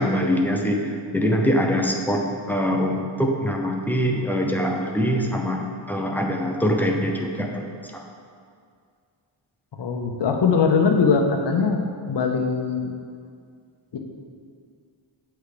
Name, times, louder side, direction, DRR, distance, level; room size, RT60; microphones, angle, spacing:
voice 1, 0.0-7.7 7.9-8.0, equal, 5° left, 1 dB, 0.5 m, -23 dB
voice 2, 9.8-12.9 13.9-14.0, left 5 dB, 60° left, 3 dB, 0.8 m, -21 dB
8.3 x 3.5 x 4.9 m, 2.2 s
wide cardioid pair, 135°, 49 cm